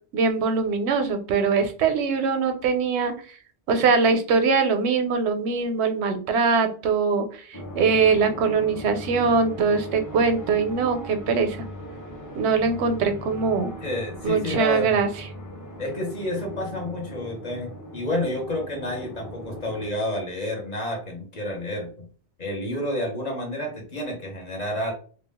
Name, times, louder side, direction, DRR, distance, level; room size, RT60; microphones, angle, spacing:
voice 1, 0.1-3.1 3.7-11.6 12.3-13.7 14.2-15.1, right 5 dB, 85° right, 7 dB, 0.9 m, -22 dB
sound 1, 7.5-19.9, equal, 20° left, 0.5 m, -39 dB
voice 2, 13.8-14.9 15.8-22.1 22.4-24.9, left 1 dB, 40° left, 0 dB, 1.0 m, -30 dB
2.3 x 2.1 x 3.4 m, 0.41 s
omnidirectional pair, 1.1 m